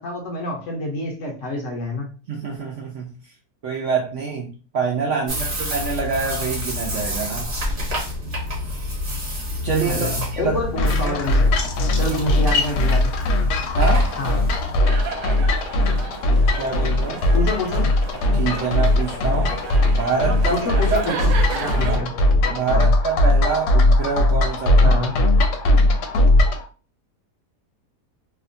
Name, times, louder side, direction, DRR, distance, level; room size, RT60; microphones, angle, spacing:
voice 1, 0.0-2.1 5.3-5.4 9.9-11.5 12.0-13.1 14.2-14.4 17.3-17.9 20.5-21.3 21.6-22.2 22.7-22.9 24.8-25.1, left 2 dB, 65° left, 0 dB, 0.8 m, -27 dB
voice 2, 2.3-3.1 3.6-7.5 9.6-10.6 10.9-11.2 12.1-12.2 13.7-14.1 16.6-17.3 18.3-19.6 19.9-21.0 21.7-22.0 22.5-25.0, right 5 dB, 70° right, -1 dB, 0.7 m, -26 dB
sound 1, 5.3-14.8, left 1 dB, 40° right, 1.1 m, -29 dB
sound 2, 10.8-26.6, left 1 dB, 80° left, 1.1 m, -19 dB
sound 3, 14.8-22.0, right 4 dB, 90° right, 1.2 m, -33 dB
2.8 x 2.2 x 2.5 m, 0.36 s
omnidirectional pair, 1.7 m